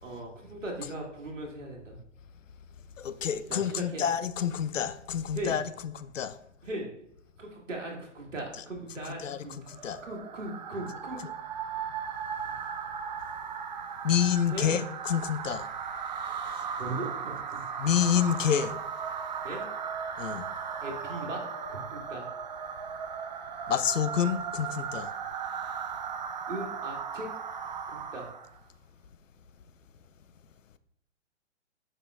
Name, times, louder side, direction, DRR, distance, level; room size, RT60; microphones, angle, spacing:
voice 1, 0.0-2.0 3.5-4.0 5.3-5.6 6.6-6.9 7.4-9.5 10.0-11.2 14.5-14.8 16.8-17.6 19.4-19.6 20.8-21.4 21.7-22.3 26.5-27.3 27.9-28.3, right 1 dB, 80° right, 2.0 m, -38 dB
voice 2, 3.0-6.3 9.1-9.4 9.7-10.0 14.0-15.6 17.8-18.7 20.2-20.5 23.7-25.1, left 8 dB, 80° left, 0.6 m, -28 dB
sound 1, 9.7-28.6, right 7 dB, 40° right, 0.4 m, -37 dB
7.4 x 5.5 x 2.4 m
figure-of-eight pair, 135°, 37 cm